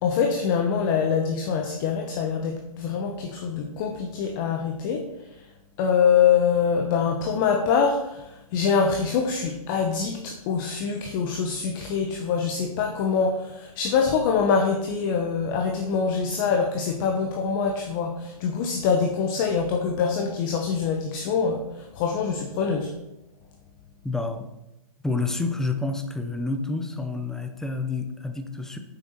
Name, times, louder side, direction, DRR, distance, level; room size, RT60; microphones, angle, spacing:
voice 1, 0.0-5.1 5.4-5.5 5.8-22.9, left 6 dB, 35° left, 3 dB, 1.0 m, -24 dB
voice 2, 24.0-24.5 25.0-28.8, left 3 dB, 5° left, 6 dB, 0.6 m, -29 dB
9.1 x 7.0 x 4.4 m, 0.90 s
hypercardioid pair, 145°, 19 cm